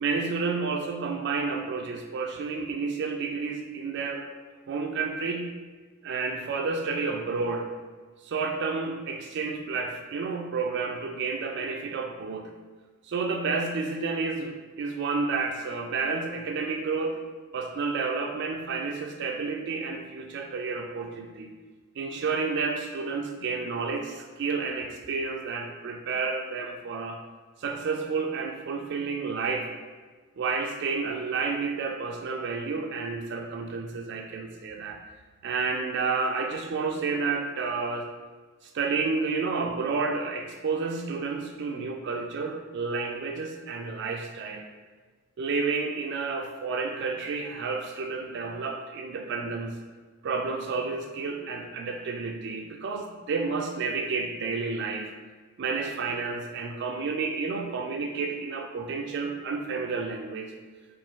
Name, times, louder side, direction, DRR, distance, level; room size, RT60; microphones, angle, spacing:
voice 1, 0.0-4.2 4.7-5.5 6.0-7.7 8.2-12.5 13.1-17.2 17.5-21.5 22.0-27.2 27.6-29.7 30.4-35.0 35.4-38.1 38.6-44.7 45.4-49.8 50.2-55.1 55.6-60.5, right 4 dB, 55° right, 2 dB, 0.4 m, -30 dB
4.2 x 2.6 x 3.8 m, 1.4 s
head